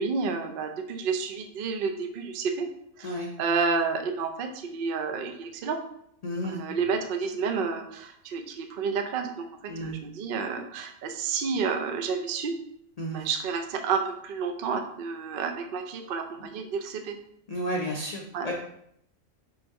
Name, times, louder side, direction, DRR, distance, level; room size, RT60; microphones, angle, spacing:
voice 1, 0.0-2.7 3.0-5.8 6.4-9.4 9.8-12.5 13.1-17.2 18.3-18.5, right 5 dB, 65° right, 4 dB, 0.5 m, -30 dB
voice 2, 6.2-6.6 9.7-10.0 13.0-13.2 17.5-18.5, equal, 90° left, -1 dB, 0.3 m, -32 dB
3.9 x 2.6 x 4.6 m, 0.72 s
omnidirectional pair, 1.4 m